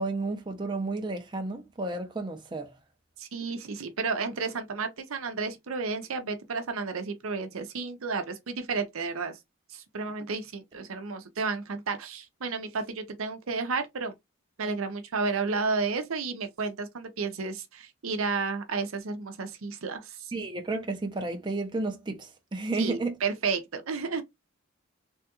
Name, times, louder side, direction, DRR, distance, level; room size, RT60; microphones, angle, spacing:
voice 1, 0.0-2.7 20.3-23.2, right 2 dB, 20° right, 0.5 m, -32 dB
voice 2, 3.2-9.4 9.7-14.1 14.6-20.3 22.8-24.2, right 4 dB, 90° right, 0.7 m, -32 dB
3.4 x 2.3 x 2.9 m
head